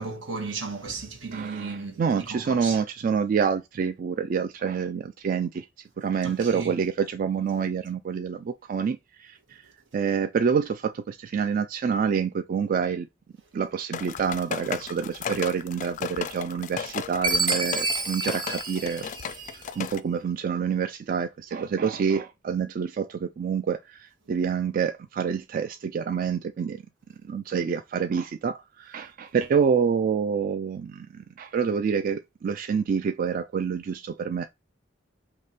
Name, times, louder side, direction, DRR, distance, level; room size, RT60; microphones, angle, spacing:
voice 1, 0.0-2.8 6.2-6.7, right 4 dB, 85° right, 1.5 m, -35 dB
voice 2, 1.3-5.7 6.0-9.6 9.9-13.1 13.5-19.0 19.3-26.8 27.2-34.4, right 6 dB, 45° right, 0.3 m, -27 dB
sound 1, 13.9-20.0, left 7 dB, 40° left, 0.3 m, -35 dB
Chime, 17.2-19.8, right 3 dB, 25° right, 0.7 m, -28 dB
3.4 x 2.8 x 4.1 m
head